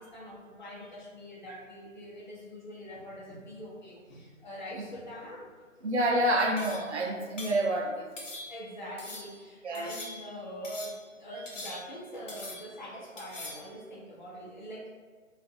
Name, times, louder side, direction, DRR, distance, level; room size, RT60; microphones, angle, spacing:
voice 1, 0.0-5.5 8.5-14.9, equal, 35° left, -4 dB, 0.7 m, -43 dB
voice 2, 5.8-8.1 9.6-9.9, right 1 dB, 60° right, -1 dB, 0.6 m, -28 dB
sound 1, 6.6-7.0 7.4-7.7 8.2-8.7 9.0-9.4 9.7-10.4 10.6-11.1 11.5-12.0 12.3-12.8 13.2-13.7, left 2 dB, 65° left, 0.9 m, -43 dB
2.5 x 2.5 x 4.0 m, 1.5 s
figure-of-eight pair, 150°, 39 cm